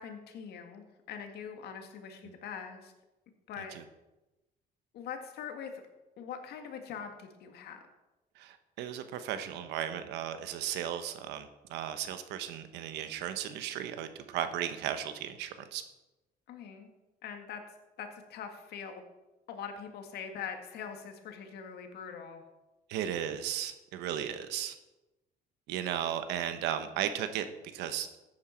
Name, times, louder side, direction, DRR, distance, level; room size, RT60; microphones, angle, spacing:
voice 1, 0.0-2.9 3.5-3.8 4.9-5.7 6.2-7.8 16.5-16.9 17.2-19.0 19.5-22.4, left 7 dB, 70° left, 5 dB, 1.8 m, -43 dB
voice 2, 8.3-15.8 22.9-24.8 25.7-28.1, right 10 dB, 90° right, 10 dB, 1.1 m, -35 dB
14.0 x 9.0 x 4.4 m, 1.0 s
cardioid pair, 110°, 17 cm